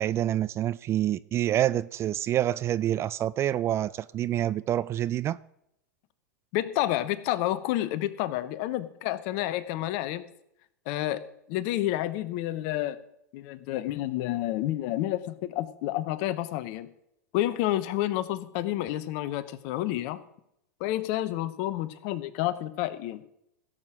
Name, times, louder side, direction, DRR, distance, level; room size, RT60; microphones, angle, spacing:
voice 1, 0.0-5.4, right 12 dB, 30° right, 0.3 m, -27 dB
voice 2, 6.5-10.3 10.9-11.2 11.5-13.0 13.3-16.9 17.3-20.2 20.8-23.2, left 14 dB, 50° left, 1.0 m, -29 dB
16.0 x 7.6 x 5.0 m
figure-of-eight pair, 95°, 10 cm